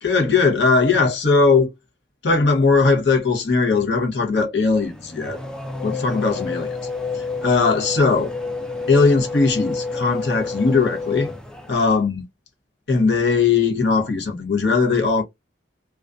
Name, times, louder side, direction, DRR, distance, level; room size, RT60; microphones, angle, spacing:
voice 1, 0.0-1.7 2.2-5.4 5.8-6.7 7.1-8.3 8.9-11.3 11.7-12.2 12.9-15.2, left 4 dB, 65° left, 0.7 m, -19 dB
Race car auto racing / Accelerating revving vroom, 4.7-12.0, left 3 dB, 5° left, 0.3 m, -29 dB
2.5 x 2.3 x 2.2 m
head